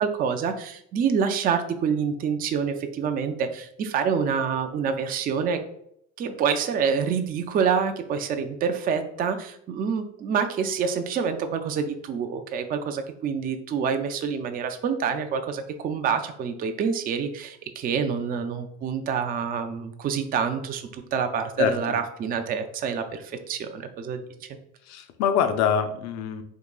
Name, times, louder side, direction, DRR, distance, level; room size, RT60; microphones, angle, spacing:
voice 1, 0.0-5.6 6.2-24.5, right 6 dB, 25° right, 6 dB, 0.3 m, -27 dB
voice 2, 21.6-22.0 24.8-26.4, left 8 dB, 45° left, 8 dB, 0.5 m, -25 dB
3.7 x 2.8 x 2.3 m, 0.72 s
hypercardioid pair, 70°, 37 cm